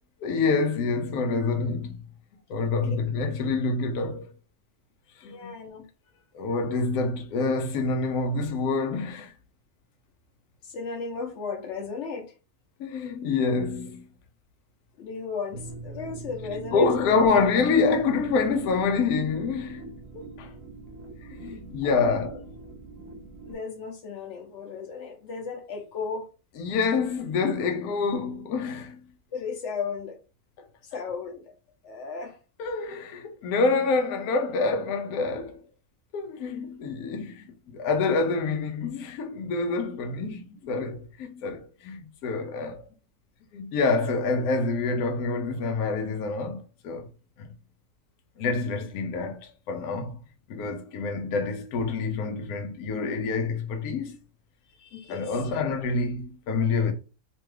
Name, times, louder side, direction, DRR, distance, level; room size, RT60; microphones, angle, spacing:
voice 1, 0.2-2.0 2.5-4.3 5.1-5.6 6.3-9.3 12.8-14.1 16.7-20.5 21.2-22.4 26.6-29.1 30.6-30.7 32.6-35.6 36.1-42.9 43.5-47.1 47.4-47.5 48.4-50.2 50.5-54.2 55.1-56.9, left 4 dB, 85° left, 1.1 m, -27 dB
voice 2, 5.2-5.8 10.6-12.3 15.0-17.2 21.8-22.2 23.5-26.3 29.3-30.2 30.8-31.6 31.8-32.4 48.5-48.9 54.8-55.7, left 5 dB, 60° left, 1.0 m, -35 dB
sound 1, 15.5-23.5, right 3 dB, 70° right, 0.9 m, -43 dB
3.0 x 2.3 x 3.1 m
omnidirectional pair, 1.5 m